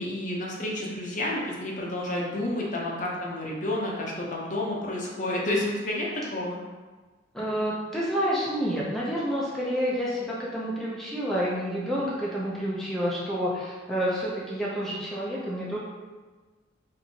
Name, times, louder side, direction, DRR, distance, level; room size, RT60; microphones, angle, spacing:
voice 1, 0.0-6.6, left 1 dB, 40° left, -3 dB, 0.7 m, -30 dB
voice 2, 7.3-15.8, equal, ahead, -7 dB, 0.5 m, -29 dB
4.3 x 2.6 x 2.8 m, 1.3 s
head